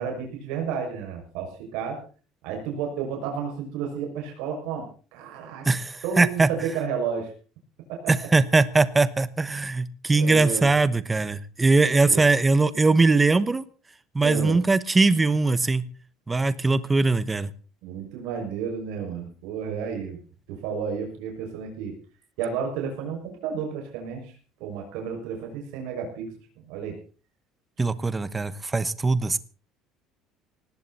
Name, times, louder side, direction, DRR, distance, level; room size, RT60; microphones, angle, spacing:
voice 1, 0.0-2.0 2.4-5.6 6.0-7.3 7.9-8.1 10.1-10.7 12.1-12.2 14.2-14.6 17.8-20.2 20.5-21.9 22.4-24.3 24.6-26.3 26.7-27.0, right 6 dB, 75° right, 1 dB, 6.2 m, -31 dB
voice 2, 5.6-6.5 8.1-13.6 14.1-15.8 16.3-17.5 27.8-29.4, right 3 dB, 10° right, 15 dB, 1.0 m, -21 dB
19.0 x 16.0 x 4.2 m, 0.38 s
cardioid pair, 175°, 0 cm